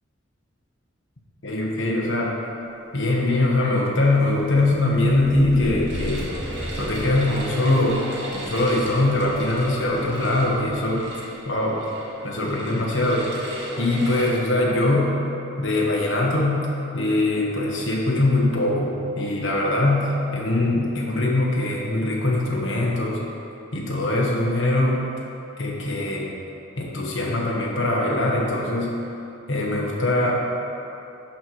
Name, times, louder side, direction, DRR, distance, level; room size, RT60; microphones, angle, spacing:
voice 1, 1.4-2.4 2.9-6.3 6.8-8.0 8.3-11.1 11.4-11.8 12.2-13.3 13.8-15.2 15.6-16.7 16.9-23.2 23.7-25.0 25.6-26.3 26.8-29.0 29.5-30.4, left 2 dB, 65° left, -3 dB, 1.3 m, -22 dB
sound 1, 4.2-10.9 11.3-11.4 12.5-12.6 12.8-13.1, equal, 20° left, 1.3 m, -37 dB
sound 2, 5.9-14.3, right 1 dB, 60° right, 1.7 m, -35 dB
12.0 x 4.5 x 4.6 m, 2.7 s
head